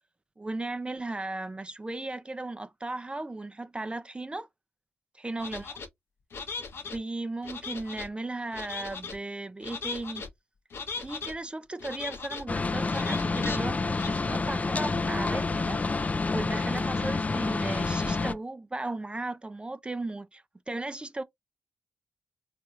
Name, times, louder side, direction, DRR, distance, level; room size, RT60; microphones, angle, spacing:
voice 1, 0.4-4.5 5.2-5.8 6.9-10.3 11.0-15.8 16.3-21.2, right 2 dB, 25° right, 0.5 m, -36 dB
sound 1, 5.4-5.9 6.3-7.0 7.4-8.1 8.5-9.2 9.6-10.3 10.7-11.3 11.8-12.4 12.9-13.6 13.9-14.1, left 5 dB, 65° left, 0.9 m, -38 dB
sound 2, 12.5-18.3, left 3 dB, 35° left, 0.5 m, -28 dB
4.2 x 3.3 x 2.4 m
supercardioid pair, 40°, 4 cm